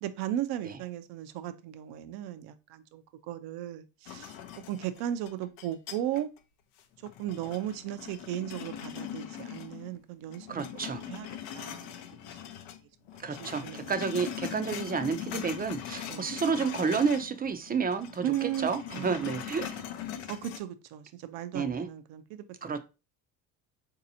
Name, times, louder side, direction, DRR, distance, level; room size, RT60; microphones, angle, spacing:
voice 1, 0.0-4.4 4.7-6.3 7.0-10.6 11.1-11.3 11.5-12.4 13.4-13.9 16.1-16.3 18.2-19.3 20.3-22.5, right 12 dB, 70° right, 0.5 m, -36 dB
sound 1, 4.1-6.4 6.8-10.0 10.3-12.8 13.1-17.4 17.6-20.6, left 10 dB, 90° left, 0.6 m, -41 dB
voice 2, 10.5-11.0 13.2-19.8 21.5-21.9 22.6-22.8, right 5 dB, 25° right, 0.4 m, -30 dB
3.9 x 2.8 x 2.6 m
supercardioid pair, 80°, 40 cm